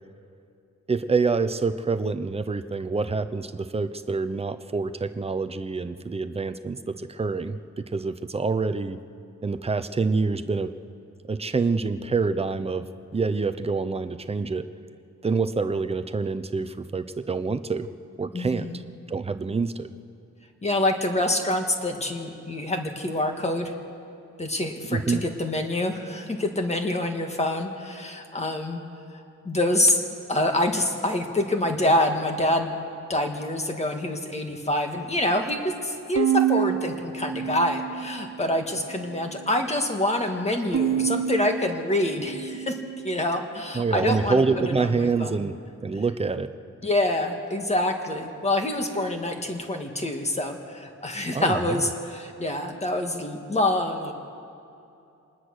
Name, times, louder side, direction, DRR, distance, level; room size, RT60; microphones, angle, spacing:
voice 1, 0.9-9.0 9.4-10.7 11.3-12.9 13.1-14.7 15.2-17.9 18.2-18.7 19.1-19.9 24.9-25.2 43.7-45.6 45.8-46.5 51.3-51.9, right 4 dB, 20° right, 11 dB, 0.6 m, -26 dB
voice 2, 18.3-18.8 20.6-23.7 24.4-28.8 29.1-30.0 30.3-32.7 33.1-42.7 43.0-45.3 46.8-54.1, left 1 dB, 20° left, 4 dB, 1.7 m, -26 dB
Bowed string instrument, 36.2-38.5 39.0-39.8 40.7-43.3, right 10 dB, 70° right, 0.8 m, -28 dB
24.5 x 20.0 x 6.5 m, 2.7 s
wide cardioid pair, 180°, 31 cm